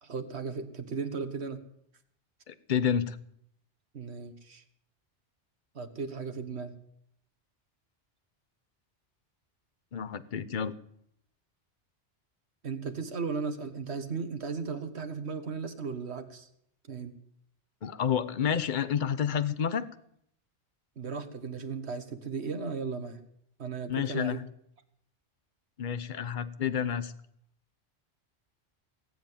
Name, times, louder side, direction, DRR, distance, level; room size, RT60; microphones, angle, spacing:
voice 1, 0.0-1.6 3.9-4.6 5.8-6.7 12.6-16.5 16.9-17.1 21.0-23.2 23.6-24.4, right 5 dB, 70° right, 8 dB, 1.7 m, -36 dB
voice 2, 2.5-3.2 9.9-10.7 17.8-19.9 23.9-24.5 25.8-27.1, left 8 dB, 50° left, 14 dB, 0.9 m, -29 dB
19.0 x 7.9 x 9.2 m, 0.72 s
omnidirectional pair, 1.2 m